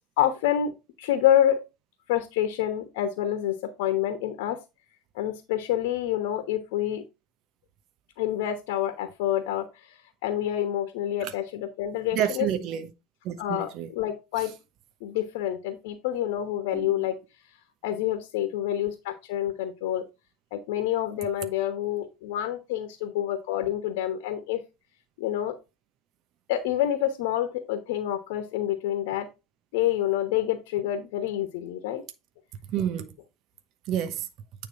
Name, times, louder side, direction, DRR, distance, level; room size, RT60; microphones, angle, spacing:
voice 1, 0.2-0.7 1.0-1.6 2.1-4.6 5.1-7.0 8.2-12.5 13.4-14.5 15.0-17.1 17.8-20.0 20.5-24.6 25.2-25.6 26.5-29.3 29.7-32.0, left 11 dB, 70° left, 1.1 m, -27 dB
voice 2, 12.1-12.9 13.2-13.9 16.7-17.1 32.7-33.1 33.9-34.3, right 10 dB, 55° right, 0.9 m, -29 dB
9.2 x 3.5 x 4.7 m
hypercardioid pair, 75°, 0 cm